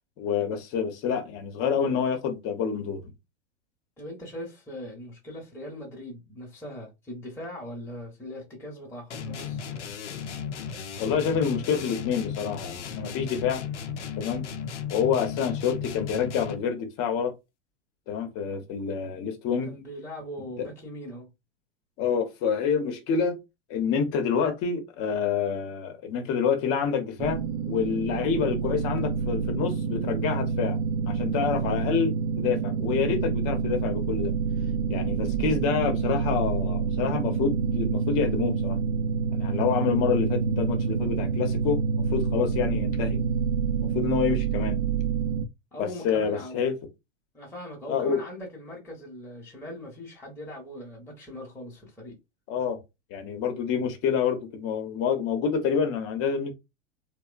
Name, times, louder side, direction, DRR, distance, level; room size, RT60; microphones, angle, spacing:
voice 1, 0.2-3.0 11.0-13.6 14.2-14.4 14.9-17.3 18.1-19.7 20.6-20.7 22.0-23.4 23.7-30.8 31.1-34.3 34.9-38.8 39.3-43.2 43.8-44.8 45.8-46.7 47.9-48.2 52.5-52.8 53.1-56.5, left 7 dB, 40° left, 0.8 m, -27 dB
voice 2, 4.0-9.6 19.6-21.3 45.7-46.6 47.3-52.2, left 1 dB, 5° left, 0.8 m, -40 dB
sound 1, 9.1-16.8, left 6 dB, 85° left, 0.6 m, -35 dB
sound 2, 27.2-45.5, right 6 dB, 70° right, 0.5 m, -27 dB
2.8 x 2.1 x 2.4 m
hypercardioid pair, 100°, 35 cm